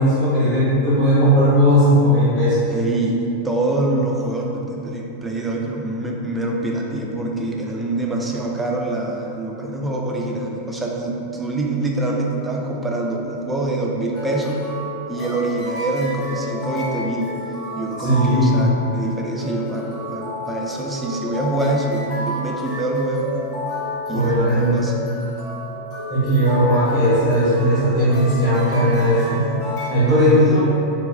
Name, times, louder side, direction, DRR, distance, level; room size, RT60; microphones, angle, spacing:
voice 1, 0.0-2.7 18.0-18.5 24.1-24.9 26.1-29.5 29.9-30.6, equal, 25° left, -16 dB, 1.3 m, -17 dB
voice 2, 2.7-14.6 15.1-17.3 17.8-23.4 24.1-24.9, right 2 dB, 10° right, -1 dB, 0.4 m, -25 dB
sound 1, 14.1-29.9, left 2 dB, 45° left, 0.7 m, -31 dB
3.7 x 2.2 x 2.5 m, 2.8 s
figure-of-eight pair, 90°, 0 cm